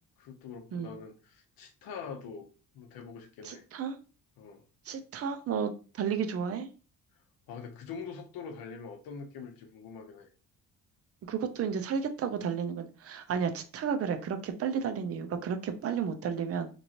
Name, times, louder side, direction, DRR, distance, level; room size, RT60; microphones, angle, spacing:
voice 1, 0.2-3.7 4.4-4.6 7.5-10.3, left 5 dB, 85° left, 0.7 m, -44 dB
voice 2, 3.4-4.0 4.9-6.7 11.3-16.7, right 7 dB, 45° right, 0.5 m, -32 dB
3.0 x 2.6 x 2.8 m
cardioid pair, 125°, 34 cm